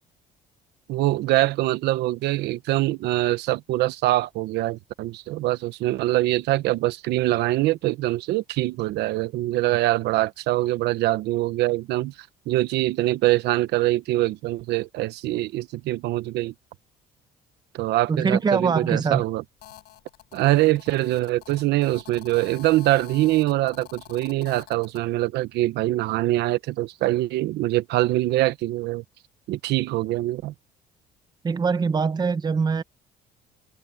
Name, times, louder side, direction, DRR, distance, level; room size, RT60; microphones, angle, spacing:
voice 1, 0.9-12.1 12.5-16.5 17.7-19.4 20.3-29.0 29.5-30.5, right 17 dB, 80° right, 1.0 m, -24 dB
voice 2, 18.1-19.2 31.4-32.8, right 5 dB, 25° right, 0.9 m, -23 dB
Telephone, 19.6-25.0, left 14 dB, 75° left, 5.0 m, -46 dB
cardioid pair, 110°, 17 cm